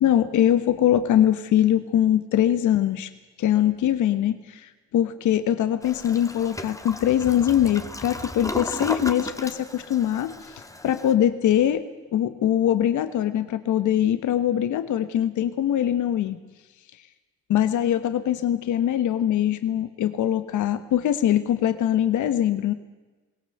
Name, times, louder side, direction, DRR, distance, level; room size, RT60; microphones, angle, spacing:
voice 1, 0.0-3.1 3.4-11.8 12.1-16.4 17.5-22.7, left 11 dB, 75° left, 11 dB, 1.3 m, -22 dB
Toilet flush, 5.8-11.1, left 1 dB, 10° left, 1.6 m, -35 dB
22.0 x 18.0 x 7.9 m, 1.2 s
cardioid pair, 90°, 30 cm